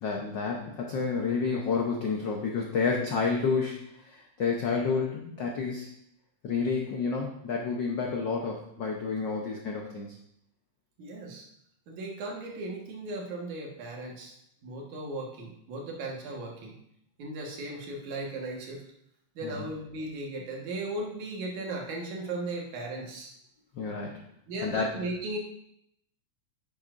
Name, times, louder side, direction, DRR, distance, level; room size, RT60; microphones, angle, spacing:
voice 1, 0.0-5.9 6.4-10.2 19.4-19.6 23.7-24.2 24.6-24.9, left 5 dB, 90° left, 0 dB, 1.0 m, -30 dB
voice 2, 11.0-11.5 11.9-14.3 14.6-16.8 17.2-18.8 19.4-23.3 24.5-25.4, right 2 dB, 90° right, 0 dB, 2.9 m, -36 dB
10.5 x 8.5 x 2.6 m, 0.76 s
omnidirectional pair, 3.3 m